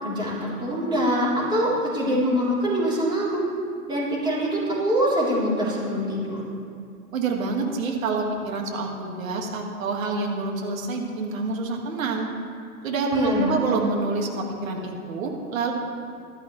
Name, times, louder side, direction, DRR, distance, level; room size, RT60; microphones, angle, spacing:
voice 1, 0.0-3.5 3.9-6.4 13.1-13.6, equal, 10° right, -7 dB, 3.6 m, -24 dB
voice 2, 7.1-12.3 12.8-15.7, right 3 dB, 60° right, 1 dB, 2.1 m, -27 dB
16.0 x 12.5 x 3.3 m, 2.6 s
figure-of-eight pair, 110°, 45 cm